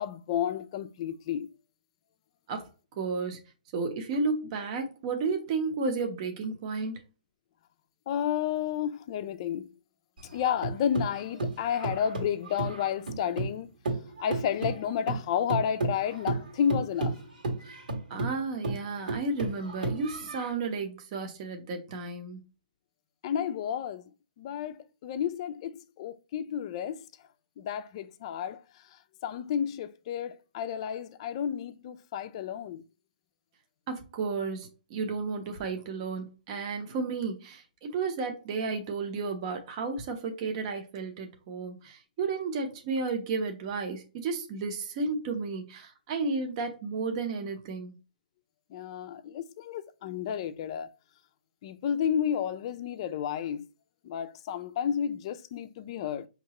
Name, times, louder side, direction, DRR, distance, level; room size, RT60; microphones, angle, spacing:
voice 1, 0.0-1.5 8.1-9.7 10.3-13.7 14.2-17.1 23.2-24.0 24.4-27.1 27.6-28.6 29.2-32.8 48.7-50.9 51.6-53.7 54.0-56.3, left 9 dB, 40° left, 0.4 m, -31 dB
voice 2, 3.0-3.4 3.7-7.0 17.6-17.8 18.1-22.4 33.9-48.0, right 4 dB, 35° right, 0.8 m, -33 dB
sound 1, 10.2-13.6 13.8-20.5, right 2 dB, 75° right, 1.6 m, -33 dB
5.3 x 2.9 x 2.9 m
hypercardioid pair, 150°, 5 cm